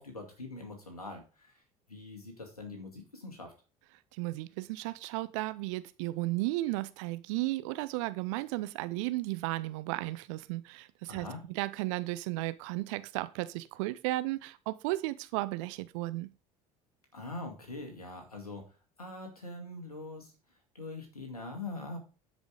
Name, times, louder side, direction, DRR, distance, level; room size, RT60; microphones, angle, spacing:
voice 1, 0.0-1.6 1.9-3.5 11.1-11.4 17.1-18.7 19.0-20.3 20.7-22.0, left 2 dB, 80° left, 3 dB, 2.3 m, -43 dB
voice 2, 4.1-16.3, right 19 dB, 60° right, 14 dB, 0.7 m, -34 dB
10.5 x 5.2 x 5.0 m, 0.34 s
figure-of-eight pair, 65°, 19 cm